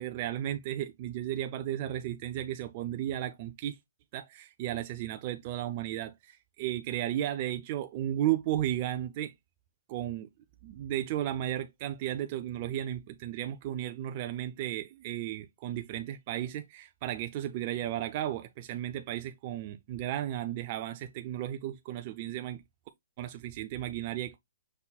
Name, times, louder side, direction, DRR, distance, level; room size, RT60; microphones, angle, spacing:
voice 1, 0.0-3.8 4.1-9.3 9.9-10.3 10.6-22.6 23.2-24.4, right 12 dB, 25° right, 0.3 m, -34 dB
5.4 x 4.1 x 2.2 m
hypercardioid pair, 180°, 0 cm